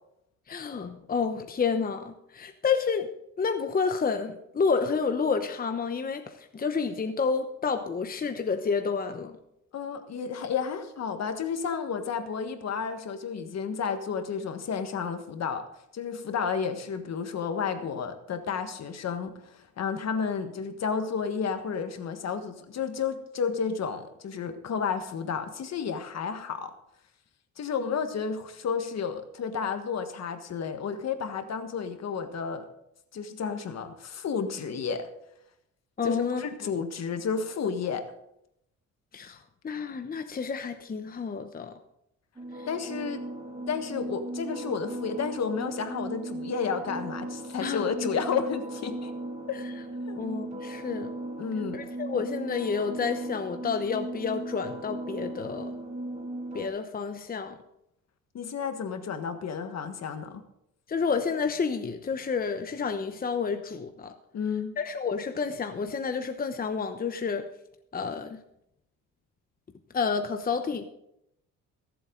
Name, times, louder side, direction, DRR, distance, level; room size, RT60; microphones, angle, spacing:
voice 1, 0.5-3.1 3.4-9.4 36.0-36.8 39.1-39.4 39.6-41.7 42.6-42.7 47.6-48.1 50.2-51.1 51.7-55.7 56.5-57.5 60.9-64.1 64.8-67.5 67.9-68.4 69.9-70.9, left 5 dB, 30° left, 7 dB, 0.9 m, -30 dB
voice 2, 9.7-15.6 15.9-26.7 27.6-32.7 33.1-35.1 36.0-38.0 42.7-43.2 43.7-49.1 50.0-50.2 51.4-51.8 58.3-60.4 64.3-64.7, left 6 dB, 60° left, 8 dB, 1.6 m, -31 dB
sound 1, 42.4-56.7, right 1 dB, 20° right, 2.5 m, -37 dB
23.0 x 7.8 x 3.9 m, 0.79 s
cardioid pair, 90°, 30 cm